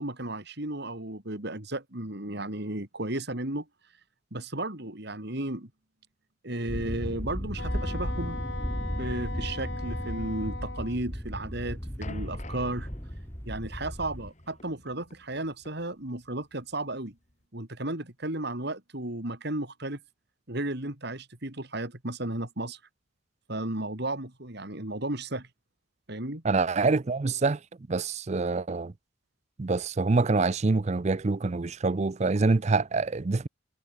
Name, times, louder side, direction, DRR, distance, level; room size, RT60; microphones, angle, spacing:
voice 1, 0.0-3.6 4.3-5.7 6.4-8.4 9.0-12.9 13.4-17.1 17.5-20.0 20.5-22.8 23.5-25.5 26.1-26.4, right 1 dB, 55° right, 3.3 m, -34 dB
sound 1, 6.7-14.3, equal, 10° left, 3.5 m, -35 dB
Wind instrument woodwind instrument, 7.6-11.0, left 3 dB, 60° left, 3.6 m, -40 dB
sound 2, 12.0-17.4, left 2 dB, 35° left, 3.6 m, -51 dB
voice 2, 26.4-27.6 27.9-28.9 29.6-33.5, right 3 dB, 35° right, 0.5 m, -26 dB
head